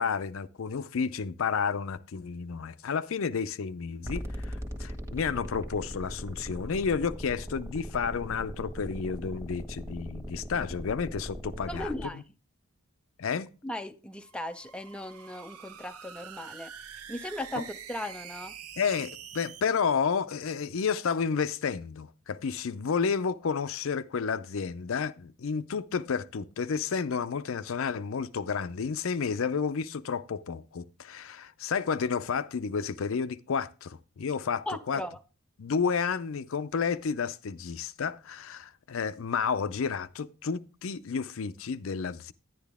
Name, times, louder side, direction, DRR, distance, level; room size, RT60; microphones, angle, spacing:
voice 1, 0.0-12.2 13.2-13.5 18.8-35.0 35.6-42.3, left 6 dB, 65° left, 0.5 m, -31 dB
sound 1, 4.0-12.0, equal, 15° right, 1.4 m, -39 dB
voice 2, 11.7-12.2 13.6-16.7 17.1-18.5 34.7-35.2, left 1 dB, 5° left, 0.4 m, -37 dB
sound 2, 14.2-19.6, right 8 dB, 90° right, 0.8 m, -46 dB
10.5 x 10.5 x 3.5 m
head